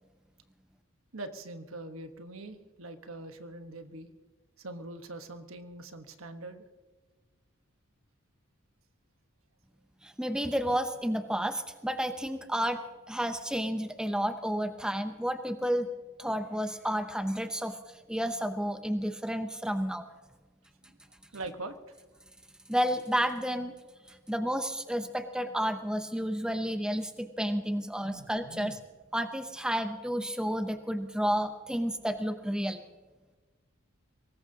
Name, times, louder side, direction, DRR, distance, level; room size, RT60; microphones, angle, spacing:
voice 1, 1.1-4.1 4.6-6.6 21.3-21.7 28.0-28.8, right 2 dB, 80° right, 7 dB, 1.3 m, -43 dB
voice 2, 10.0-12.8 13.1-15.9 16.2-20.0 22.7-23.7 24.1-28.7 29.1-32.8, equal, 5° right, 8 dB, 0.7 m, -31 dB
23.0 x 19.0 x 2.8 m, 1.3 s
head